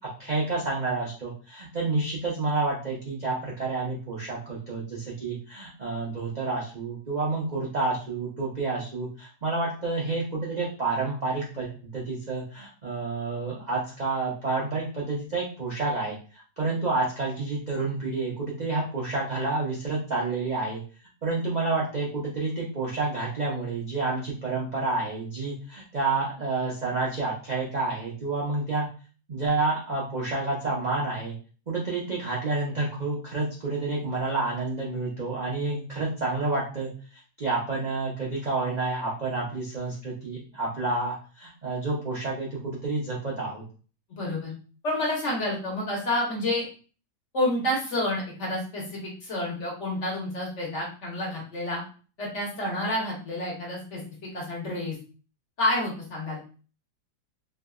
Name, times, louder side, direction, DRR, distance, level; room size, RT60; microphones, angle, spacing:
voice 1, 0.2-16.2 16.6-20.8 21.2-28.9 29.3-31.3 31.7-36.9 37.4-43.6, right 3 dB, 55° right, -5 dB, 0.4 m, -29 dB
voice 2, 44.1-44.5 44.8-46.6 47.3-51.8 52.2-55.0 55.6-56.4, left 1 dB, 50° left, -3 dB, 1.2 m, -29 dB
3.2 x 2.7 x 2.3 m, 0.38 s
omnidirectional pair, 1.8 m